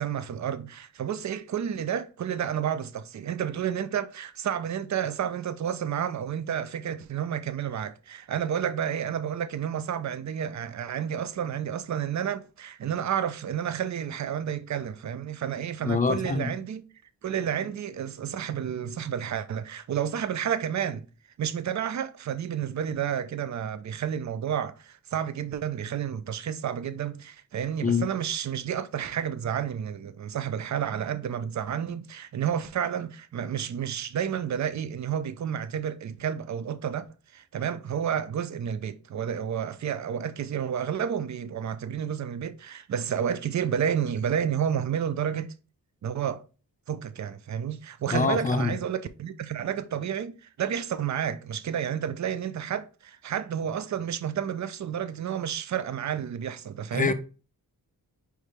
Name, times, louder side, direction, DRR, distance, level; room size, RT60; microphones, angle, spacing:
voice 1, 0.0-16.8 17.2-21.1 21.4-37.0 37.3-45.5 46.0-46.4 46.9-57.1, right 8 dB, 50° right, 0.5 m, -30 dB
voice 2, 15.8-16.5 27.8-28.0 48.1-48.8 56.9-57.1, left 4 dB, 20° left, 0.6 m, -25 dB
4.8 x 3.2 x 3.3 m
cardioid pair, 75°, 37 cm